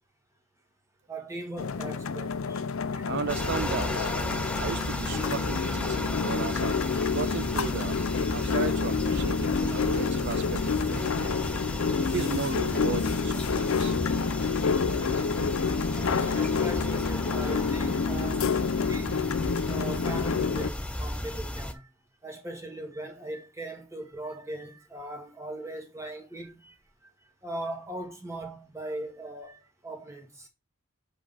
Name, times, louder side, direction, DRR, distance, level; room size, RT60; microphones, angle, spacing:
voice 1, 1.1-2.6 2.9-3.1 5.1-5.3 5.6-5.7 6.9-7.2 7.8-7.9 9.4-9.6 11.1-11.7 12.1-12.2 14.7-14.9 15.9-19.3 19.7-21.9 22.2-26.8 27.4-30.5, right 1 dB, 15° right, 1.8 m, -40 dB
sound 1, 1.6-20.7, left 5 dB, 75° left, 0.5 m, -28 dB
voice 2, 3.1-4.1 4.6-6.9 7.1-8.0 8.3-11.4 12.0-14.0, right 6 dB, 55° right, 0.3 m, -35 dB
sound 2, 3.3-21.7, left 1 dB, 5° left, 0.7 m, -34 dB
7.7 x 3.5 x 4.0 m
head